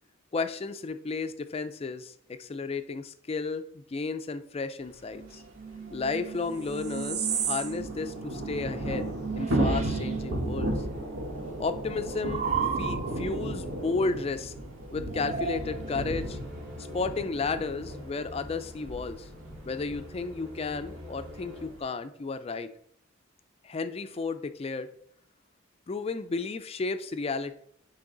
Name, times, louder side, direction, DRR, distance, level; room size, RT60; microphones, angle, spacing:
voice 1, 0.3-5.4 5.9-10.8 11.6-14.5 14.9-16.4 16.9-19.3 19.6-22.7 23.6-24.9 25.9-27.6, left 4 dB, 30° left, 10 dB, 0.3 m, -33 dB
sound 1, 5.1-10.7 11.0-13.4 15.1-16.1, right 7 dB, 35° right, 0.5 m, -35 dB
Thunder / Rain, 5.2-5.3 5.5-5.6 5.9-21.8, right 1 dB, 85° right, 1.3 m, -35 dB
sound 2, 15.4-21.7, left 1 dB, 65° right, 2.9 m, -45 dB
9.7 x 3.3 x 3.9 m, 0.68 s
head